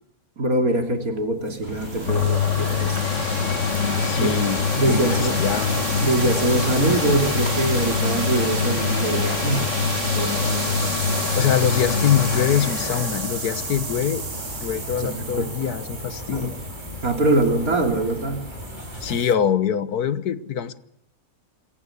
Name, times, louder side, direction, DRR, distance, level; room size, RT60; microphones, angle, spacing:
voice 1, 0.4-3.0 4.2-4.3 4.7-5.3 6.0-10.7 14.7-15.5 16.3-16.5 17.0-18.5, right 2 dB, 65° right, 5 dB, 3.4 m, -23 dB
sound 1, 1.1-19.3, right 4 dB, 45° right, 1.9 m, -33 dB
sound 2, 1.6-19.2, left 1 dB, 30° left, 5.5 m, -37 dB
sound 3, 2.1-15.7 16.3-16.4, left 5 dB, 55° left, 1.7 m, -25 dB
voice 2, 4.0-5.8 11.4-14.2 14.6-16.6 19.0-20.8, left 8 dB, 80° left, 14 dB, 1.6 m, -24 dB
27.0 x 15.0 x 8.4 m, 0.72 s
omnidirectional pair, 1.6 m